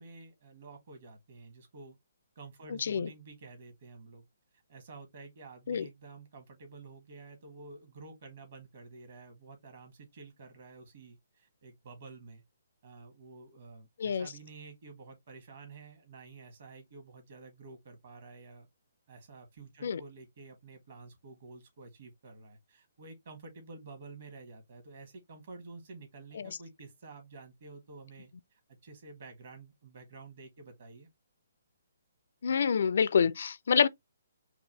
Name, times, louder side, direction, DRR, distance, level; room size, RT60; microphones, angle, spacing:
voice 1, 0.0-2.0 2.3-4.2 4.7-12.4 12.8-18.7 19.1-31.1, right 3 dB, 50° right, 1.7 m, -50 dB
voice 2, 2.8-3.1 5.7-5.9 14.0-14.3 19.8-20.0 26.3-26.6 32.4-33.9, left 6 dB, 55° left, 0.3 m, -27 dB
4.7 x 2.3 x 3.1 m
figure-of-eight pair, 135°, 0 cm